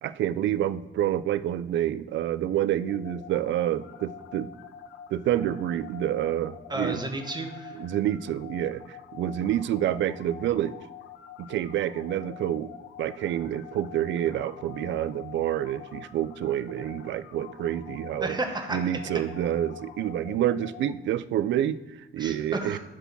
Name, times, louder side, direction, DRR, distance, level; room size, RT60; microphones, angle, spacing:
voice 1, 0.0-4.5 5.1-7.0 7.7-10.7 11.4-12.7 13.0-18.4 18.7-22.8, right 11 dB, 70° right, 16 dB, 0.4 m, -28 dB
sound 1, 2.8-20.9, left 9 dB, 75° left, 0.6 m, -46 dB
voice 2, 6.7-7.8 18.2-18.8 22.2-22.8, right 2 dB, 20° right, 4 dB, 1.2 m, -32 dB
7.6 x 3.6 x 6.0 m, 1.1 s
cardioid pair, 90°, 20 cm